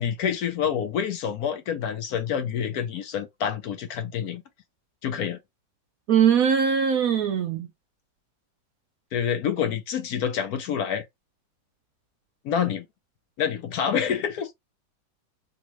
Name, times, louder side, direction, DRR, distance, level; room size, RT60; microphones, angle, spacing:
voice 1, 0.0-4.4 5.0-5.4 9.1-11.0 12.4-12.8 13.4-14.5, left 8 dB, 70° left, 1.0 m, -27 dB
voice 2, 6.1-7.7, right 7 dB, 70° right, 0.9 m, -21 dB
3.0 x 2.7 x 3.0 m
omnidirectional pair, 1.8 m